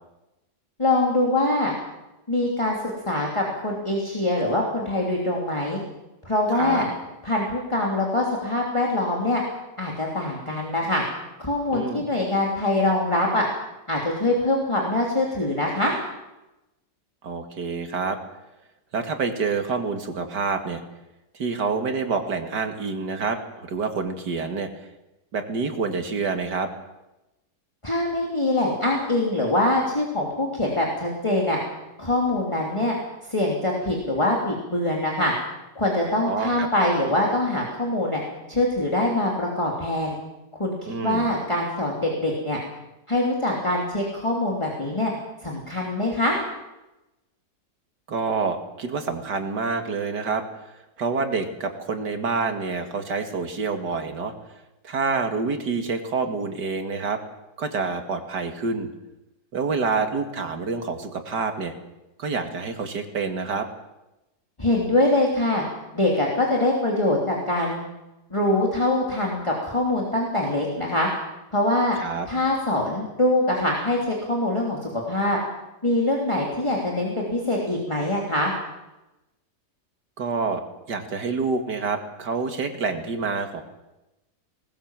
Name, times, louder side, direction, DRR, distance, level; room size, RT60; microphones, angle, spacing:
voice 1, 0.8-1.7 2.3-2.8 3.1-5.8 6.2-6.9 7.2-9.4 9.8-11.0 11.4-13.5 13.9-15.9 27.8-31.6 32.0-32.9 33.3-35.3 35.7-38.2 38.5-40.1 40.6-40.7 41.0-42.6 43.1-45.1 45.4-46.4 64.6-65.6 65.9-67.8 68.3-71.1 71.5-72.0 72.3-75.4 75.8-78.5, left 1 dB, 15° left, -2 dB, 3.1 m, -23 dB
voice 2, 6.5-6.9 11.7-12.0 17.2-18.2 18.9-20.8 21.3-24.7 25.3-26.7 36.2-36.7 40.9-41.3 48.1-50.4 51.0-54.3 54.8-57.2 57.6-58.9 59.5-61.7 62.2-63.7 72.0-72.3 80.2-80.6 80.9-83.6, right 4 dB, 90° right, 6 dB, 2.6 m, -27 dB
19.5 x 19.0 x 7.5 m, 0.98 s
omnidirectional pair, 1.7 m